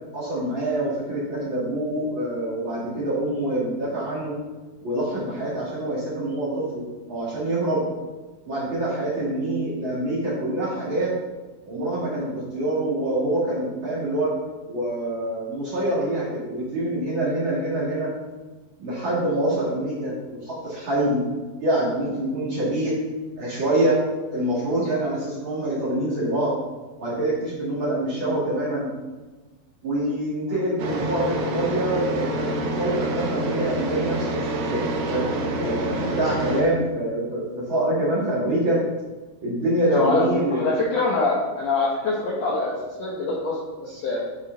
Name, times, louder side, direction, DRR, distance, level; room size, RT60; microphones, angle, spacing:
voice 1, 0.1-4.4 4.8-6.8 7.1-7.8 8.5-11.1 11.7-14.3 14.7-18.1 18.8-21.2 21.6-23.0 23.4-26.5 27.0-28.9 29.8-34.4 34.7-35.3 35.6-38.8 39.4-40.7, right 1 dB, 40° right, -8 dB, 2.4 m, -25 dB
sound 1, 30.8-36.6, right 1 dB, 85° right, 1.3 m, -27 dB
voice 2, 39.9-40.3 40.5-44.2, left 3 dB, 65° left, -4 dB, 1.7 m, -24 dB
10.0 x 4.9 x 3.9 m, 1.3 s
omnidirectional pair, 4.1 m